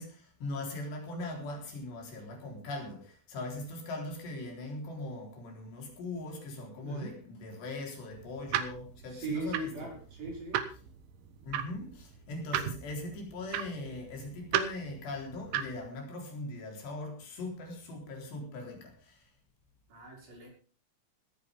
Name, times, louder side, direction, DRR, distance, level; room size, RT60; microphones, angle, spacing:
voice 1, 0.0-9.9 11.4-19.3, left 2 dB, 65° left, 6.0 m, -40 dB
voice 2, 6.8-7.1 9.0-10.6 19.9-20.5, right 2 dB, 50° right, 7.4 m, -39 dB
sound 1, 8.1-15.9, right 10 dB, 80° right, 3.7 m, -36 dB
18.0 x 14.5 x 3.6 m
omnidirectional pair, 5.4 m